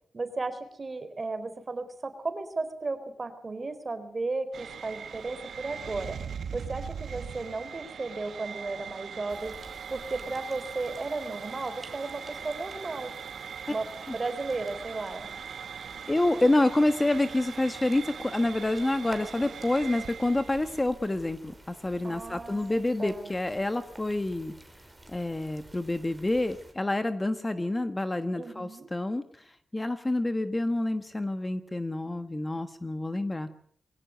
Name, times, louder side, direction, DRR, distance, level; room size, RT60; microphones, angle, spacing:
voice 1, 0.1-6.2 6.5-9.5 9.9-13.1 13.7-13.9 14.1-15.3 22.0-23.3 28.3-28.9, right 3 dB, 30° right, 10 dB, 4.0 m, -35 dB
sound 1, 4.5-20.8, right 7 dB, 75° right, 1.2 m, -41 dB
sound 2, 9.3-26.7, right 1 dB, 10° right, 4.9 m, -52 dB
voice 2, 16.1-24.5 25.1-33.5, left 2 dB, 15° left, 9 dB, 1.4 m, -28 dB
23.0 x 18.0 x 9.2 m, 0.64 s
wide cardioid pair, 105°, 0 cm